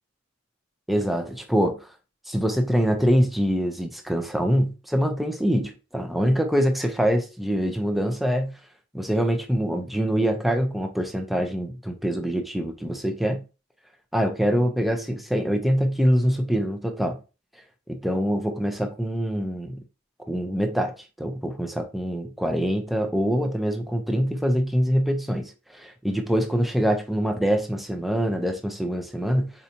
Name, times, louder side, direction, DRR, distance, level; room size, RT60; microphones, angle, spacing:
voice 1, 0.9-1.9 2.3-8.6 8.9-13.4 14.1-17.2 17.9-19.8 20.3-29.5, equal, ahead, 0.4 m, -24 dB
4.3 x 2.6 x 2.7 m
head